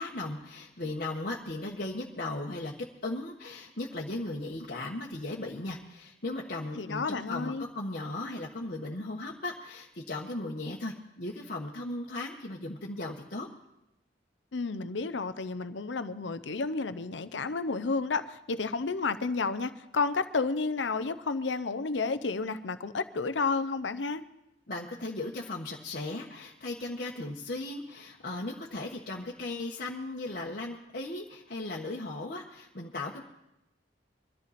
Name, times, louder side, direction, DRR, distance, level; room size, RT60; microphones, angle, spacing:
voice 1, 0.0-2.7 3.0-13.5 24.7-33.2, left 2 dB, 55° left, -3 dB, 1.3 m, -37 dB
voice 2, 6.8-7.6 14.5-24.2, left 4 dB, 85° left, 12 dB, 0.7 m, -31 dB
23.0 x 14.0 x 4.2 m, 0.87 s
head